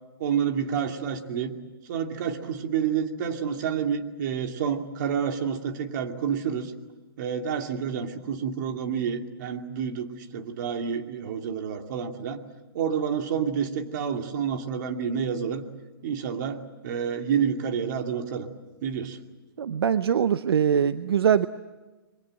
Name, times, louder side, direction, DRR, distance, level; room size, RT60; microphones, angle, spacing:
voice 1, 0.2-1.5 1.9-6.7 7.2-12.4 12.7-15.6 16.0-18.5 18.8-19.2, right 7 dB, 50° right, 5 dB, 2.5 m, -29 dB
voice 2, 19.6-21.5, right 8 dB, 75° right, 13 dB, 0.8 m, -22 dB
29.5 x 22.5 x 7.8 m, 1.2 s
hypercardioid pair, 150°, 13 cm